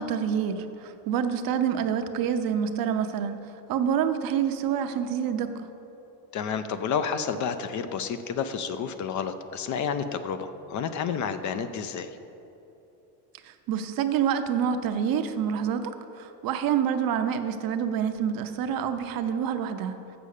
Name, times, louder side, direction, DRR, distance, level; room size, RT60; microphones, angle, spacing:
voice 1, 0.0-3.4 3.7-5.7 13.4-20.0, right 8 dB, 55° right, 8 dB, 0.7 m, -27 dB
voice 2, 6.3-12.1, left 6 dB, 45° left, 10 dB, 0.6 m, -30 dB
7.4 x 6.9 x 6.5 m, 3.0 s
cardioid pair, 115°, 42 cm